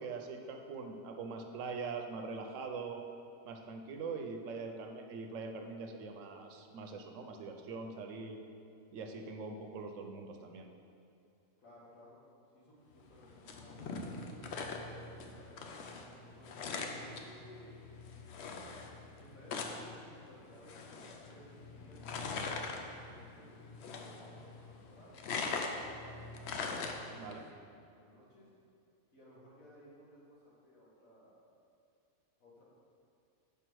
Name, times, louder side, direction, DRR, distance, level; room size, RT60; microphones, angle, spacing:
voice 1, 0.0-3.0 3.5-8.4 8.9-10.7 27.1-27.5, right 4 dB, 70° right, 4 dB, 0.9 m, -43 dB
voice 2, 11.6-12.2 12.5-14.6 14.9-15.8 16.2-17.8 19.1-25.6 25.8-26.3 27.1-28.5 29.1-31.4 32.4-32.6, equal, 75° left, -7 dB, 2.1 m, -59 dB
sound 1, 13.0-27.5, left 4 dB, 60° left, 0.8 m, -42 dB
5.4 x 4.6 x 6.1 m, 2.6 s
omnidirectional pair, 1.4 m